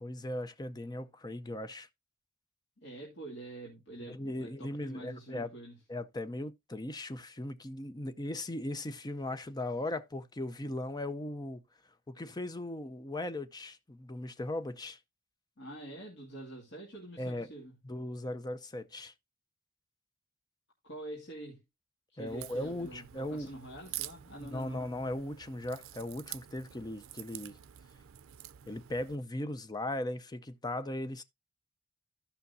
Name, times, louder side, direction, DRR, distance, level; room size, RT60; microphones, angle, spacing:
voice 1, 0.0-1.9 4.0-5.5 5.9-11.6 12.1-15.0 17.2-17.5 17.8-19.1 22.2-23.5 24.5-27.6 28.7-31.2, left 1 dB, 20° left, 0.6 m, -38 dB
voice 2, 2.8-5.8 15.6-17.8 20.8-21.6 22.1-24.8, right 1 dB, 60° left, 2.5 m, -46 dB
Crack, 22.3-29.2, right 13 dB, 90° right, 0.4 m, -47 dB
15.0 x 5.7 x 2.6 m
head